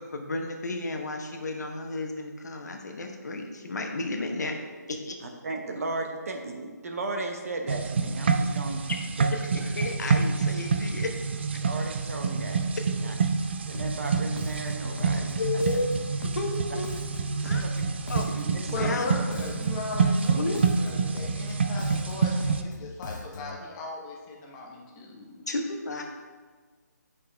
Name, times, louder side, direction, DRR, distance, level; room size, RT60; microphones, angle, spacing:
voice 1, 0.0-4.5 4.9-5.2 9.3-11.1 15.4-15.9 16.3-16.9 17.4-17.6 18.1-18.3 18.8-19.1 20.2-20.6 25.5-26.0, left 2 dB, 70° left, 3 dB, 1.0 m, -32 dB
voice 2, 5.2-8.8 9.2-9.3 11.6-12.6 13.0-13.1 13.7-15.4 17.4-17.8 18.3-18.9, right 2 dB, 50° right, 3 dB, 0.9 m, -35 dB
sound 1, 7.7-22.6, right 5 dB, 35° right, 0.4 m, -27 dB
Bass guitar, 13.7-14.1 14.4-19.0 19.3-23.6, left 4 dB, 85° left, 0.5 m, -40 dB
voice 3, 18.7-25.5, left 2 dB, 15° left, -1 dB, 0.8 m, -37 dB
7.5 x 5.5 x 3.4 m, 1.5 s
hypercardioid pair, 165°, 10 cm